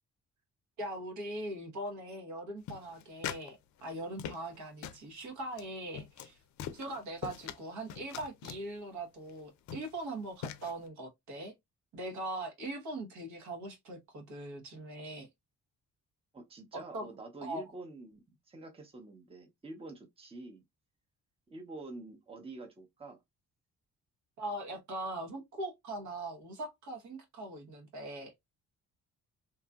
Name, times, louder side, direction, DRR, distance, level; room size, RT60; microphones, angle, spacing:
voice 1, 0.8-6.4 6.7-11.5 11.9-15.3 16.7-17.1 17.4-17.6 24.4-28.3, right 1 dB, 75° right, 1.1 m, -41 dB
sound 1, 2.7-3.5 3.8-4.6 4.8-5.0 5.5-5.6 5.9-6.3 6.6-7.6 7.9-8.6 9.3-9.4 9.7-10.0 10.4-10.7, left 9 dB, 70° left, 0.4 m, -42 dB
voice 2, 16.3-18.2 18.5-20.6 21.5-23.2, right 2 dB, 20° right, 0.8 m, -47 dB
2.9 x 2.4 x 2.3 m
cardioid pair, 90°, 30 cm